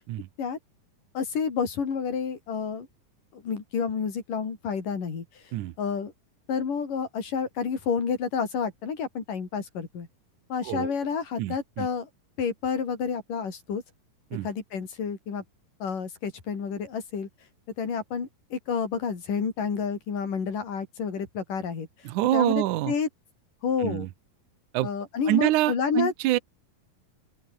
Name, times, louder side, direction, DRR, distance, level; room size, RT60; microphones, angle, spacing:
voice 1, 1.1-2.9 3.3-5.2 5.8-6.1 6.5-10.1 10.5-12.1 12.4-13.8 14.4-15.4 15.8-17.3 17.8-21.9 22.3-23.1 23.6-24.1 24.8-26.1, left 6 dB, 65° left, 5.8 m, -29 dB
voice 2, 11.4-11.9 14.3-14.5 22.0-22.9 23.8-24.1 24.7-24.9 25.3-26.4, right 16 dB, 70° right, 2.1 m, -26 dB
open air
omnidirectional pair, 4.2 m